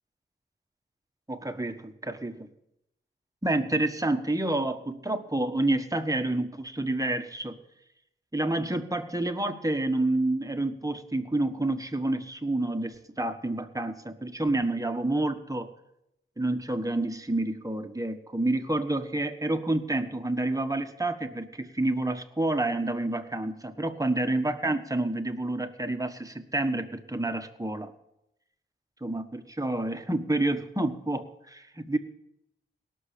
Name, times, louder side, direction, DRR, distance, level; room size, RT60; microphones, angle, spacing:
voice 1, 1.3-2.5 3.4-7.6 8.3-15.7 16.4-27.9 29.0-32.0, right 2 dB, 15° right, 6 dB, 1.4 m, -29 dB
18.0 x 6.4 x 8.5 m, 0.83 s
cardioid pair, 60°, 20 cm